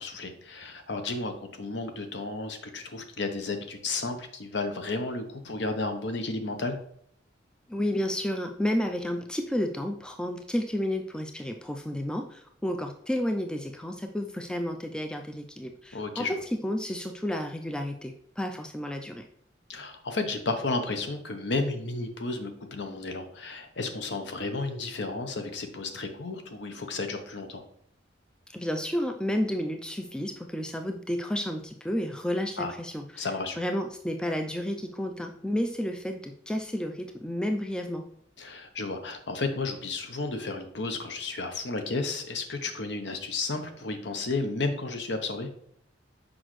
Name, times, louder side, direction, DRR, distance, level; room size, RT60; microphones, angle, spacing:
voice 1, 0.0-6.8 15.9-16.4 19.7-27.6 32.6-32.7 33.2-33.6 38.4-45.5, left 3 dB, 65° left, 7 dB, 0.8 m, -32 dB
voice 2, 7.7-19.2 28.5-33.3 33.6-38.0, equal, 5° left, 4 dB, 0.3 m, -31 dB
6.2 x 5.0 x 3.1 m, 0.66 s
head